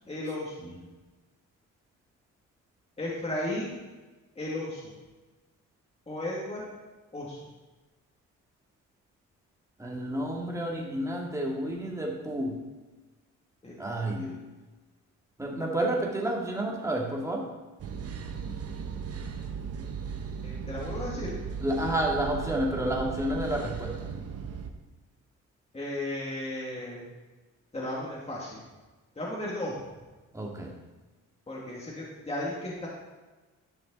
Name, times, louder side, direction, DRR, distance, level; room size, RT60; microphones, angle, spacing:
voice 1, 0.1-0.7 3.0-3.8 4.4-4.9 6.1-6.7 7.1-7.4 13.6-14.3 20.4-21.4 25.7-27.0 27.7-28.6 29.2-29.8 31.5-32.9, left 1 dB, 20° left, -5 dB, 2.2 m, -35 dB
voice 2, 9.8-12.6 13.8-14.4 15.4-17.5 21.6-23.9 30.3-30.7, right 1 dB, 10° right, -2 dB, 2.2 m, -30 dB
sound 1, 17.8-24.7, right 6 dB, 55° right, 0.9 m, -37 dB
11.5 x 5.9 x 4.1 m, 1.2 s
cardioid pair, 90°, 30 cm